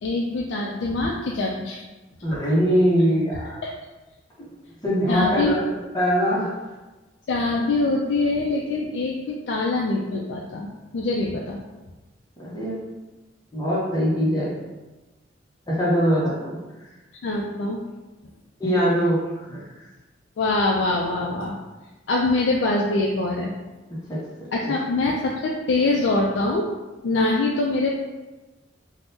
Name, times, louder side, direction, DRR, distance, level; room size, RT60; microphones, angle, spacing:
voice 1, 0.0-1.8 3.6-3.7 5.1-5.6 7.3-10.7 10.9-11.6 17.1-17.8 20.4-21.6 22.1-23.5 24.5-26.7 27.0-27.9, left 2 dB, 70° left, -2 dB, 0.3 m, -24 dB
voice 2, 2.2-3.6 4.8-5.6 5.9-6.5 12.4-12.8 13.5-14.5 15.7-16.6 18.6-19.7 23.9-24.7, equal, 20° left, -7 dB, 0.6 m, -22 dB
3.4 x 2.0 x 2.6 m, 1.1 s
head